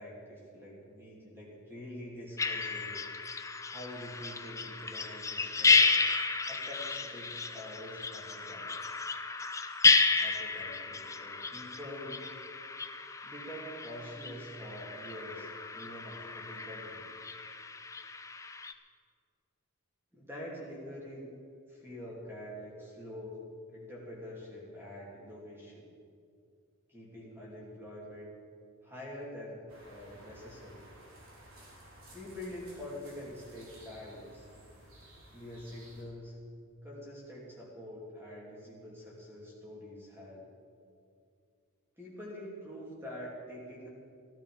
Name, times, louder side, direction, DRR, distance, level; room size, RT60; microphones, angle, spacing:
voice 1, 0.0-3.0 3.6-5.9 6.5-8.8 10.2-12.2 13.2-17.1 20.1-21.3 21.7-25.8 26.9-28.4 28.8-30.9 32.1-34.5 35.3-36.3 36.8-40.4 42.0-43.9, left 1 dB, 10° right, -5 dB, 3.1 m, -45 dB
sound 1, 2.4-18.7, left 4 dB, 15° left, 0.5 m, -31 dB
sound 2, 29.7-36.0, right 1 dB, 75° right, 3.8 m, -55 dB
16.0 x 12.5 x 5.2 m, 2.3 s
head